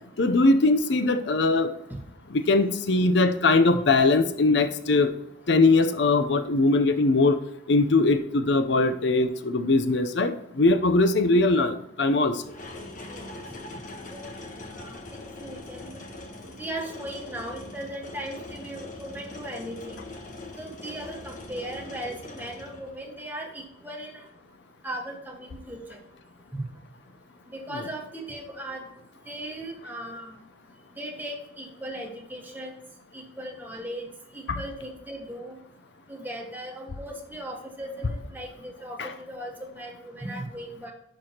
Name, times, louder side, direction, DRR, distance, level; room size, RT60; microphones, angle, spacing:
voice 1, 0.2-1.7 2.3-5.1 5.5-7.4 7.7-12.4 27.7-27.8 34.5-34.6 39.0-39.1, left 3 dB, 65° left, 9 dB, 0.6 m, -21 dB
sound 1, 12.4-23.2 24.3-24.4, left 2 dB, 40° left, 1.2 m, -42 dB
voice 2, 14.8-16.0 16.6-20.0 20.6-24.2 24.8-26.0 26.5-26.6 27.5-28.8 29.3-30.4 31.0-32.8 33.1-34.1 34.3-35.6 36.1-40.9, right 1 dB, 10° right, 0 dB, 1.4 m, -38 dB
11.0 x 6.2 x 2.9 m, 0.81 s
head